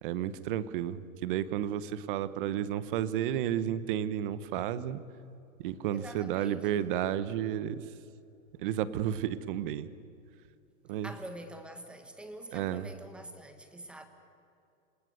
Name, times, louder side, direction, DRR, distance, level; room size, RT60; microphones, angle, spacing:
voice 1, 0.0-5.0 5.6-7.8 8.6-9.9 10.9-11.1 12.5-12.9, right 11 dB, 40° right, 15 dB, 1.1 m, -32 dB
voice 2, 5.9-6.9 11.0-14.1, right 1 dB, ahead, 7 dB, 1.3 m, -46 dB
27.5 x 18.0 x 8.0 m, 2.6 s
supercardioid pair, 165°, 41 cm